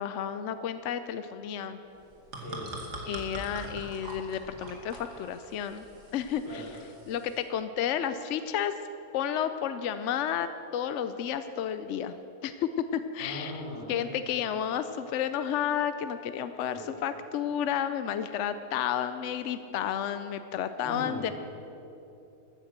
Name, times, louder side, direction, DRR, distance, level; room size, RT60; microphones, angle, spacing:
voice 1, 0.0-1.8 3.1-5.8 6.1-6.6 7.1-8.7 9.1-12.2 12.4-13.6 13.9-21.3, left 9 dB, 70° left, 10 dB, 0.7 m, -31 dB
sound 1, 2.0-7.4, right 1 dB, 85° right, 2.5 m, -43 dB
voice 2, 2.4-2.8 6.4-6.7 13.2-14.1 16.7-16.9 20.8-21.3, left 1 dB, 40° left, -5 dB, 4.7 m, -39 dB
14.5 x 9.6 x 7.4 m, 2.9 s
omnidirectional pair, 1.7 m